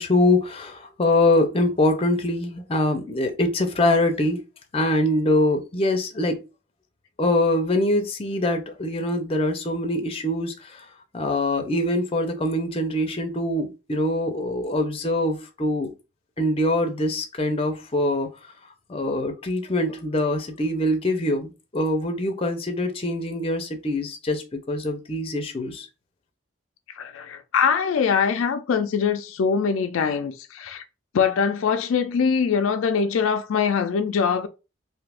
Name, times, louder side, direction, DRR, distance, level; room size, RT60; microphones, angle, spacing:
voice 1, 0.0-4.4 4.7-6.4 7.2-10.8 11.1-15.9 16.4-18.3 18.9-25.9, left 1 dB, 30° left, 0.5 m, -23 dB
voice 2, 27.0-30.8 31.1-34.5, left 6 dB, 80° left, 0.4 m, -23 dB
2.6 x 2.4 x 3.3 m
head